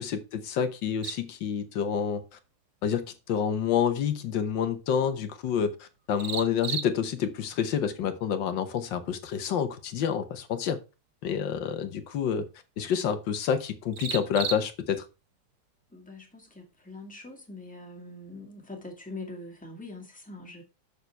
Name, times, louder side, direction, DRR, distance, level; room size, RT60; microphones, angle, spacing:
voice 1, 0.0-2.2 2.8-10.8 11.2-12.5 12.8-15.1, left 8 dB, 85° left, 1.7 m, -28 dB
sound 1, 1.0-18.8, right 7 dB, 50° right, 1.1 m, -44 dB
voice 2, 15.9-20.6, left 2 dB, 5° left, 2.0 m, -43 dB
6.8 x 6.7 x 4.5 m
omnidirectional pair, 1.9 m